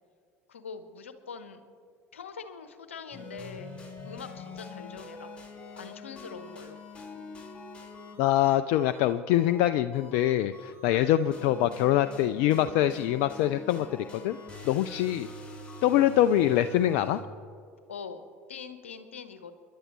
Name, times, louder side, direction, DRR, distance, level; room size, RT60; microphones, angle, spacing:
voice 1, 0.5-1.6 2.1-3.8 4.0-5.3 5.8-6.8 17.9-18.2 18.5-19.5, left 6 dB, 80° left, 10 dB, 1.0 m, -43 dB
sound 1, 3.1-17.2, left 3 dB, 15° left, 4.7 m, -45 dB
voice 2, 8.2-14.4 14.6-15.3 15.8-17.2, left 12 dB, 60° left, 12 dB, 0.4 m, -24 dB
30.0 x 11.0 x 3.1 m, 2.3 s
figure-of-eight pair, 70°, 7 cm